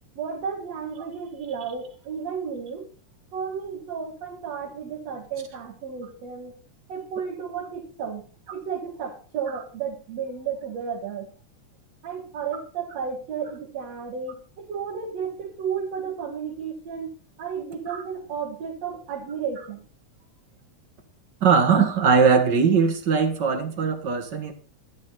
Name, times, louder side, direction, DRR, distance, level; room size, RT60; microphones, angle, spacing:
voice 1, 0.2-2.9 3.3-6.6 6.9-8.2 8.5-11.3 12.0-19.8, right 6 dB, 60° right, 3.1 m, -33 dB
voice 2, 21.4-24.5, right 5 dB, 40° right, 1.9 m, -20 dB
11.5 x 11.0 x 4.1 m
omnidirectional pair, 3.4 m